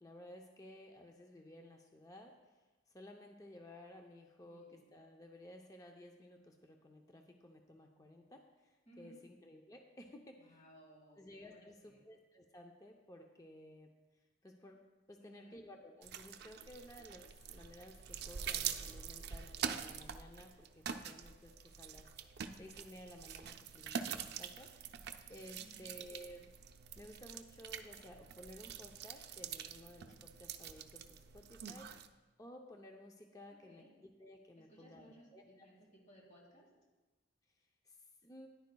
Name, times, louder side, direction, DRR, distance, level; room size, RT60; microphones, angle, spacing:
voice 1, 0.0-10.6 11.2-13.9 14.4-14.8 15.1-25.0 25.3-26.5 27.0-30.1 30.4-31.9 32.4-35.4 37.8-38.0 38.2-38.5, left 1 dB, 20° left, 2 dB, 0.6 m, -55 dB
voice 2, 4.5-4.9 8.9-9.2 10.4-12.0 15.2-15.6 25.6-25.9 33.7-33.9 34.7-36.7, right 1 dB, 40° left, -3 dB, 3.0 m, -61 dB
sound 1, 16.0-32.1, right 7 dB, 55° right, 0.5 m, -45 dB
13.5 x 10.5 x 2.3 m, 1.2 s
head